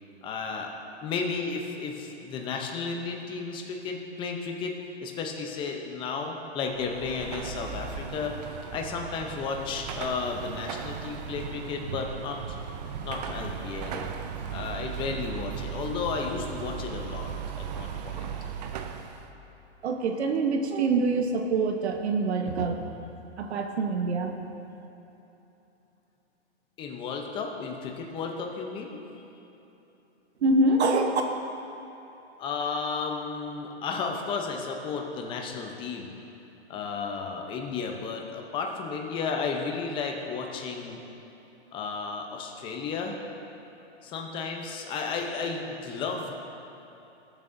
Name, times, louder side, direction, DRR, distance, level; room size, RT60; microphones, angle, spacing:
voice 1, 0.2-0.7 1.0-4.7 5.0-8.3 8.7-12.6 13.0-14.1 14.5-18.3 26.8-29.0 32.4-36.1 36.7-41.0 41.7-43.2 44.0-46.3, left 5 dB, 15° left, 2 dB, 0.7 m, -33 dB
Car passing by / Traffic noise roadway noise / Engine, 6.7-19.3, right 7 dB, 35° right, 0.6 m, -37 dB
voice 2, 19.8-22.8 23.4-24.3 30.4-31.2, right 3 dB, 65° right, 4 dB, 1.1 m, -25 dB
19.5 x 7.5 x 2.7 m, 3.0 s
hypercardioid pair, 145°, 35 cm